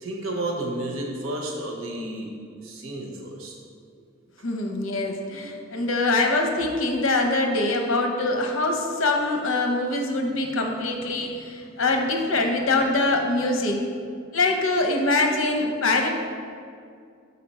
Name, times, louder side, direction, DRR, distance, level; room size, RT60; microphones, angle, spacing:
voice 1, 0.0-2.3 2.6-3.5, right 1 dB, 80° right, 0 dB, 0.9 m, -31 dB
voice 2, 4.4-13.8 14.3-16.1, left 2 dB, 75° left, 2 dB, 0.8 m, -24 dB
5.8 x 4.2 x 4.2 m, 2.3 s
head